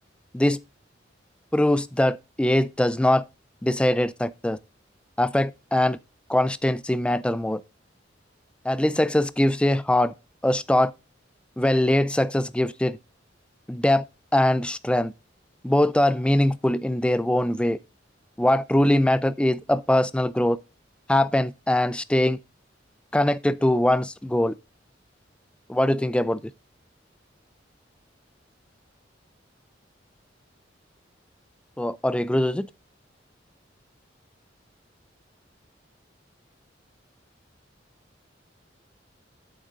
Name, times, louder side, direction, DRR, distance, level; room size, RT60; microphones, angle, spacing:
voice 1, 1.5-3.2 3.6-4.6 5.2-6.0 6.3-7.6 8.6-10.1 10.4-10.9 11.6-13.0 13.7-14.0 14.3-15.1 15.6-17.8 18.4-20.6 21.1-22.4 23.1-24.5 25.7-26.4 31.8-32.7, left 1 dB, 5° left, 0.3 m, -22 dB
8.1 x 6.4 x 3.6 m
head